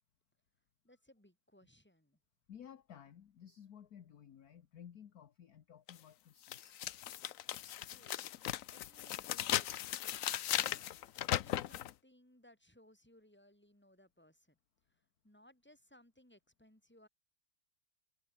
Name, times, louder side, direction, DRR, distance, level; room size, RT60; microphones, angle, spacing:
voice 1, 0.8-2.2 7.9-8.3 8.7-9.9 10.4-14.6 14.8-17.1, left 1 dB, 5° left, 4.3 m, -65 dB
voice 2, 2.5-6.8, left 9 dB, 50° left, 1.5 m, -55 dB
sound 1, 5.9-6.0 6.5-11.9, left 12 dB, 75° left, 0.7 m, -37 dB
omnidirectional pair, 2.2 m